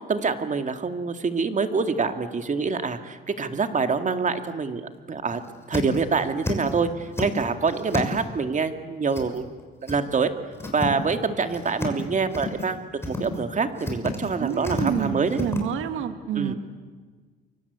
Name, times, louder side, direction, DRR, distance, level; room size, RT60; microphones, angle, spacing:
voice 1, 0.1-5.4 5.7-9.5 9.8-10.3 10.7-12.8 13.1-15.4 16.3-16.5, right 5 dB, 40° right, 7 dB, 2.3 m, -26 dB
sound 1, 3.6-4.0 4.4-4.5 4.9-5.0 5.3-6.7 7.0-8.4 9.1-9.6 9.9-10.0 10.3-11.2 11.5-12.0 12.3-12.7 13.0-13.4 13.7-15.6, left 2 dB, 10° left, 6.3 m, -31 dB
voice 2, 14.4-16.5, right 9 dB, 90° right, 9 dB, 1.8 m, -28 dB
29.0 x 24.5 x 8.3 m, 1.5 s
cardioid pair, 90°, 20 cm